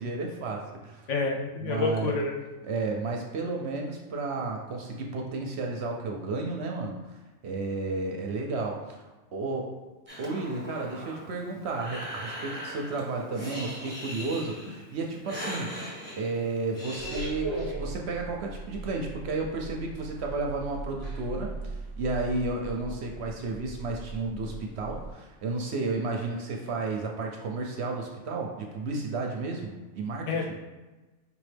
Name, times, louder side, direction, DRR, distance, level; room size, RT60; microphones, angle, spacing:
voice 1, 0.0-1.0 1.6-2.1 2.7-7.0 7.4-9.0 9.3-9.7 10.2-30.3, right 3 dB, 65° right, 1 dB, 0.7 m, -32 dB
voice 2, 1.1-2.4 30.3-30.6, left 3 dB, 70° left, 0 dB, 1.0 m, -28 dB
Breathing, 10.1-17.3, equal, 10° right, 0.9 m, -40 dB
sound 1, 17.0-25.1, right 2 dB, 25° left, 1.4 m, -38 dB
4.9 x 3.0 x 3.3 m, 1.2 s
omnidirectional pair, 1.4 m